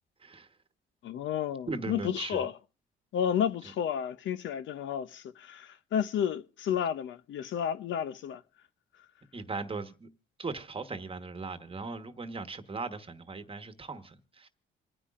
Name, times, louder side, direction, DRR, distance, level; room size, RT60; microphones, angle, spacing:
voice 1, 1.0-2.5 3.1-8.4, left 9 dB, 70° left, 0.7 m, -31 dB
voice 2, 1.7-2.5 9.3-10.1 10.4-14.5, right 3 dB, 25° right, 1.2 m, -38 dB
27.5 x 9.8 x 2.5 m
cardioid pair, 90°, 20 cm